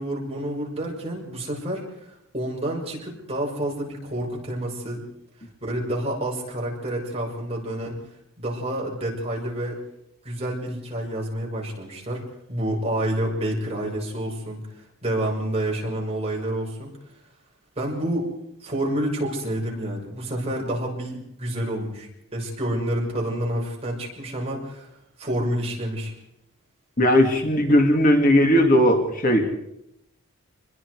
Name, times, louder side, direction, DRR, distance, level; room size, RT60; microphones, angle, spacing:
voice 1, 0.0-5.0 5.6-8.0 8.4-9.7 10.2-12.2 12.5-14.6 15.0-16.9 17.8-18.3 18.6-24.9 25.2-26.1, right 1 dB, 30° right, -1 dB, 6.2 m, -28 dB
voice 2, 27.0-29.6, equal, 40° left, 3 dB, 2.5 m, -18 dB
27.5 x 21.5 x 4.9 m, 0.80 s
head